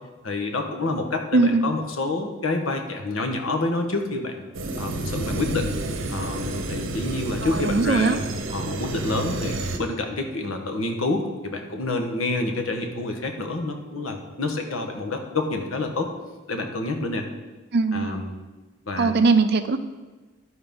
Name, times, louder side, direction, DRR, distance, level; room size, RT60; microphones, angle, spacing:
voice 1, 0.2-4.4 4.7-5.7 6.1-8.2 8.5-16.1 16.5-17.3 17.9-18.3 18.9-19.1, left 2 dB, 85° left, 4 dB, 1.3 m, -28 dB
voice 2, 1.3-1.7 7.4-8.2 17.7-18.1 19.0-19.8, right 3 dB, 55° right, 10 dB, 0.6 m, -20 dB
sound 1, 4.5-9.8, right 2 dB, 70° right, 0.9 m, -30 dB
12.5 x 4.4 x 5.4 m, 1.2 s
head